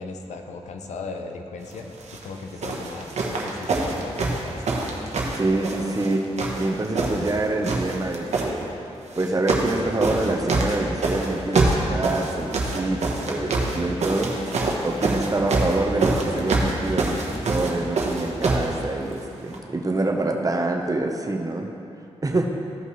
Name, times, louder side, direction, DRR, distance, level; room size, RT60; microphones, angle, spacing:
voice 1, 0.0-4.7, left 3 dB, 85° left, 4 dB, 0.7 m, -37 dB
sound 1, 2.0-2.2 2.6-6.1 6.4-7.4 7.6-8.5 9.1-9.8 10.0-18.7 19.5-19.6, right 3 dB, 75° right, 1.1 m, -25 dB
voice 2, 5.3-6.3 6.6-8.7 9.1-21.7 22.2-22.5, right 2 dB, 30° right, 2 dB, 1.0 m, -26 dB
14.5 x 5.4 x 3.2 m, 2.8 s
cardioid pair, 60°, 12 cm